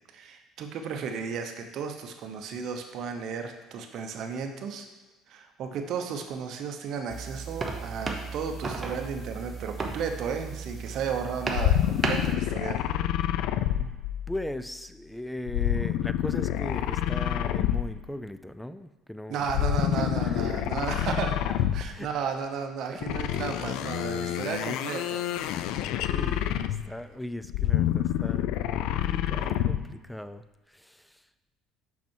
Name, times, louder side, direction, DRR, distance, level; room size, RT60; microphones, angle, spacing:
voice 1, 0.1-4.9 5.3-12.9 19.3-21.4 21.7-25.2, right 6 dB, 55° right, 5 dB, 0.9 m, -34 dB
sound 1, 7.1-12.4, right 4 dB, 25° right, 0.9 m, -34 dB
sound 2, 11.5-14.5 15.5-18.2 19.4-22.1 23.0-27.0 27.4-29.9, left 12 dB, 75° left, 0.4 m, -28 dB
voice 2, 14.3-19.7 19.9-20.7 21.8-22.1 25.9-31.2, left 1 dB, 5° left, 12 dB, 0.3 m, -39 dB
5.9 x 5.8 x 4.5 m, 1.2 s
cardioid pair, 120°, 0 cm